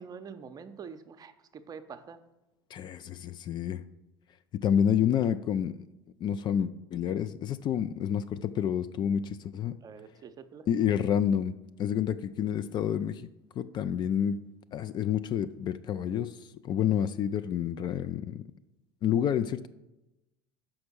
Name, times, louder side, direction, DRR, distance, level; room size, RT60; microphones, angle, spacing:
voice 1, 0.0-2.2 9.8-10.7, right 6 dB, 30° right, 9 dB, 0.7 m, -45 dB
voice 2, 2.7-3.8 4.5-5.8 6.2-9.7 10.7-13.3 13.6-14.4 14.7-16.4 16.6-18.4 19.0-19.7, left 9 dB, 35° left, 12 dB, 0.4 m, -29 dB
5.9 x 5.2 x 6.1 m, 0.96 s
figure-of-eight pair, 70°, 13 cm